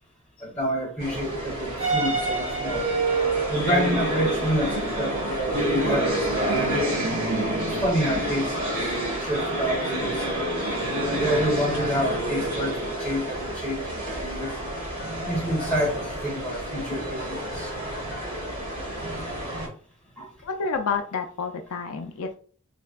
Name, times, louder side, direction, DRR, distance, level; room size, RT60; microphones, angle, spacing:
voice 1, 0.4-2.8 3.5-6.8 7.8-10.5 11.1-14.6 15.2-17.7 20.2-20.3, equal, 5° left, -3 dB, 1.1 m, -28 dB
sound 1, 1.0-19.7, right 1 dB, 40° right, 1.2 m, -28 dB
voice 2, 20.4-22.3, left 5 dB, 75° left, 5 dB, 0.4 m, -29 dB
3.3 x 2.7 x 2.2 m, 0.42 s
head